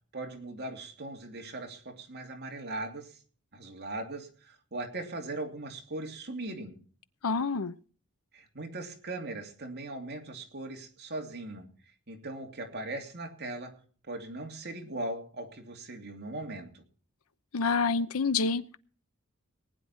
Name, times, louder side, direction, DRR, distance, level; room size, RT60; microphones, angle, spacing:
voice 1, 0.1-3.2 3.5-6.7 8.3-11.7 12.1-13.8 14.1-16.8, right 2 dB, 50° right, 2 dB, 2.8 m, -39 dB
voice 2, 7.2-7.7 17.5-18.8, left 4 dB, 85° left, 14 dB, 0.8 m, -27 dB
19.5 x 9.9 x 4.4 m, 0.42 s
head